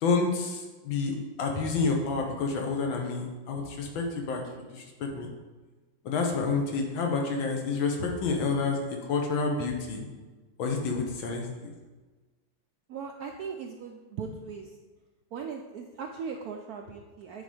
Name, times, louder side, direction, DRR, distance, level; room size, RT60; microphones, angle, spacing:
voice 1, 0.0-4.4 4.7-5.3 6.1-10.0 10.6-11.7, left 4 dB, 80° left, 2 dB, 1.8 m, -29 dB
voice 2, 12.9-14.7 15.3-17.4, right 5 dB, 75° right, 3 dB, 0.8 m, -39 dB
8.9 x 4.0 x 4.9 m, 1.3 s
omnidirectional pair, 2.1 m